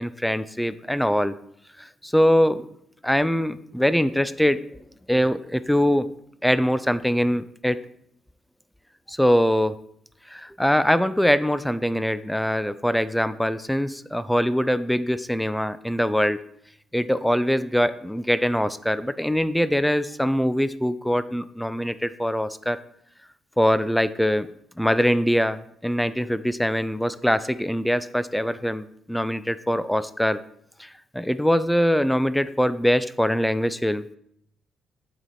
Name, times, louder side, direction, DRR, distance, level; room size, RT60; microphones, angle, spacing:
voice 1, 0.0-1.4 1.8-2.7 3.0-4.6 5.1-6.1 6.4-7.8 9.1-9.8 10.2-16.4 16.9-22.8 23.6-24.5 24.8-30.4 30.8-34.2, equal, 5° left, 14 dB, 0.3 m, -23 dB
7.7 x 4.6 x 4.1 m, 0.70 s
cardioid pair, 90°, 0 cm